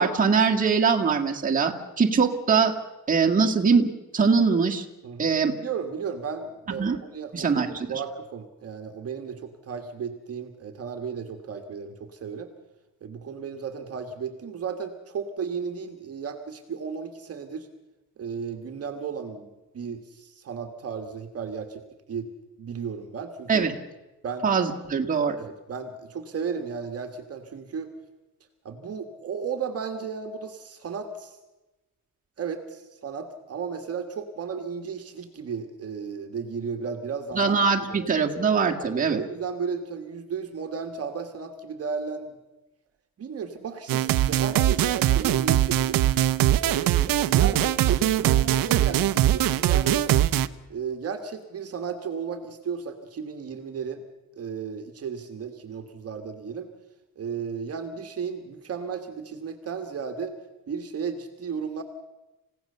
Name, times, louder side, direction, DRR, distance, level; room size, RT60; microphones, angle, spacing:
voice 1, 0.0-2.7 3.1-3.9 4.1-4.9 5.2-5.5 6.7-7.0 7.3-7.9 23.5-23.8 24.4-25.4 37.4-39.2, right 5 dB, 25° right, 1 dB, 2.0 m, -22 dB
voice 2, 5.0-7.6 7.9-12.5 13.0-17.7 18.2-19.5 19.7-22.3 22.6-23.7 24.2-24.6 25.4-27.9 28.6-31.4 32.4-37.6 37.9-38.1 38.7-42.3 43.2-46.0 46.6-50.0 50.7-54.0 54.4-56.7 57.2-60.4 60.7-61.8, right 6 dB, 45° right, 6 dB, 1.6 m, -34 dB
sound 1, 43.9-50.5, right 12 dB, 80° right, 0.9 m, -22 dB
28.5 x 16.5 x 6.8 m, 1.1 s
cardioid pair, 170°, 34 cm